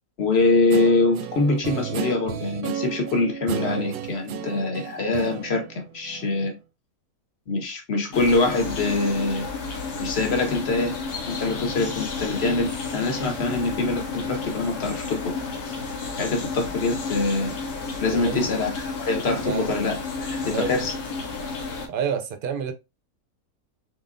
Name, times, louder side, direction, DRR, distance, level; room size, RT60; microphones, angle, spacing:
voice 1, 0.2-6.5 7.5-9.5 10.0-10.9 11.3-15.3 16.2-17.5 18.0-18.7 19.0-20.9, left 3 dB, 45° left, 1.4 m, -24 dB
Guitar, 0.7-6.5, right 7 dB, 85° right, 1.1 m, -33 dB
sound 1, 8.1-21.9, left 4 dB, 85° left, 1.5 m, -32 dB
voice 2, 18.1-18.5 19.4-19.8 20.4-20.7 21.9-22.7, right 7 dB, 55° right, 0.6 m, -29 dB
4.5 x 3.8 x 2.5 m
omnidirectional pair, 1.6 m